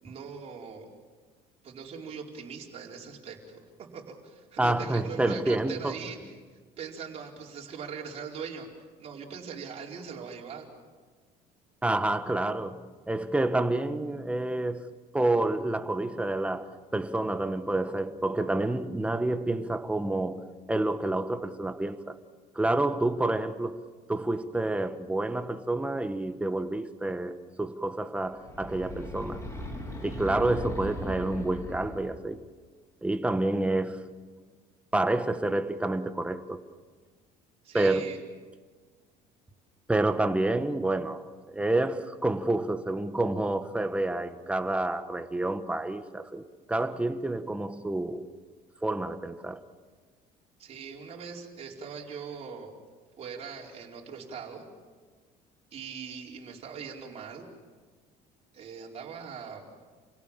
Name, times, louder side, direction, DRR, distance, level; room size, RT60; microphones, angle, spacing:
voice 1, 0.0-0.9 1.6-6.3 6.8-10.7 37.6-38.2 50.6-52.7 53.2-54.7 55.7-57.5 58.5-59.7, right 6 dB, 40° right, 4.5 m, -41 dB
voice 2, 4.6-6.0 11.8-14.9 15.1-20.4 20.7-22.2 22.5-23.8 24.1-29.5 30.0-32.4 33.0-34.0 34.9-36.6 37.7-38.1 39.9-46.4 46.7-48.3 48.8-49.6, right 2 dB, 10° right, 1.2 m, -28 dB
sound 1, 28.3-32.3, equal, 20° left, 3.8 m, -38 dB
28.5 x 17.5 x 7.3 m
cardioid pair, 130°, 15 cm